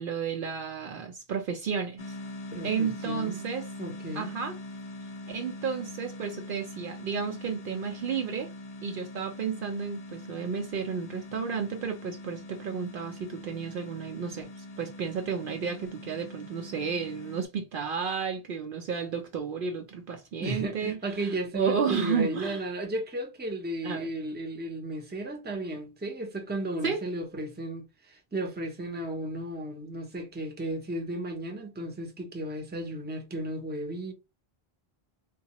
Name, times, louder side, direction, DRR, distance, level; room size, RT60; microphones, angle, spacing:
voice 1, 0.0-2.1 2.6-3.7 4.1-4.6 5.3-8.5 8.8-21.0 21.5-22.6 23.8-24.1 26.8-27.0, right 6 dB, 60° right, 0.7 m, -32 dB
sound 1, 2.0-17.5, left 1 dB, 45° left, 0.6 m, -43 dB
voice 2, 2.5-3.5 3.8-4.3 20.4-34.1, right 1 dB, 10° right, 0.6 m, -34 dB
3.6 x 2.3 x 2.9 m
omnidirectional pair, 1.1 m